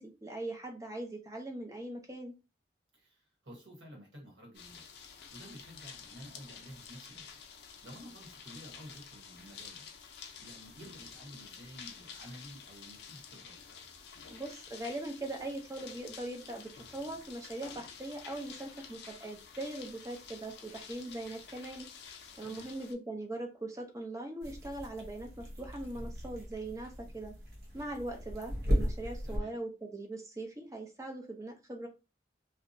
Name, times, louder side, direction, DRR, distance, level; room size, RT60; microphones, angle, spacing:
voice 1, 0.0-2.3 14.3-21.9 22.4-27.3 27.7-31.9, right 2 dB, 20° right, 3 dB, 0.5 m, -41 dB
voice 2, 2.9-4.9 5.3-7.3 7.8-9.9 10.4-13.6 22.4-22.7 29.3-29.6, equal, 90° right, 0 dB, 1.2 m, -51 dB
sound 1, 4.5-22.9, left 6 dB, 65° left, 0.5 m, -50 dB
sound 2, 24.4-29.4, equal, 60° right, 0.7 m, -36 dB
2.7 x 2.0 x 2.6 m, 0.29 s
head